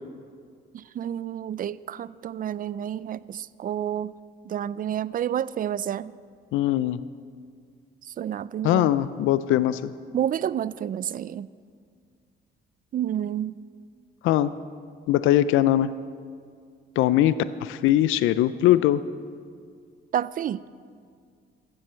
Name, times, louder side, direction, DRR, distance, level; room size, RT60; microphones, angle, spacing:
voice 1, 0.7-4.1 4.5-6.1 8.0-8.9 10.1-11.5 12.9-13.6 20.1-20.6, right 10 dB, 45° right, 19 dB, 0.4 m, -29 dB
voice 2, 6.5-7.0 8.6-9.9 14.2-14.5 15.1-15.9 17.0-19.0, left 13 dB, 90° left, 15 dB, 0.4 m, -21 dB
15.0 x 7.6 x 7.5 m, 2.1 s
cardioid pair, 90°, 20 cm